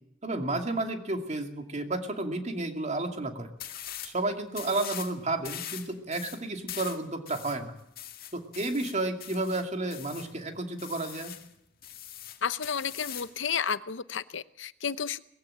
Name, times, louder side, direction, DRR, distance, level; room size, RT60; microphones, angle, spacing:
voice 1, 0.2-3.5 4.0-7.7 8.3-11.3, right 2 dB, 35° right, 5 dB, 2.6 m, -32 dB
sound 1, 3.6-4.2 4.5-5.1 5.4-10.3 10.8-11.5 11.8-13.4, left 11 dB, 50° left, 1.9 m, -42 dB
voice 2, 12.4-15.2, left 7 dB, 70° left, 15 dB, 0.8 m, -32 dB
20.0 x 15.5 x 8.8 m, 0.79 s
head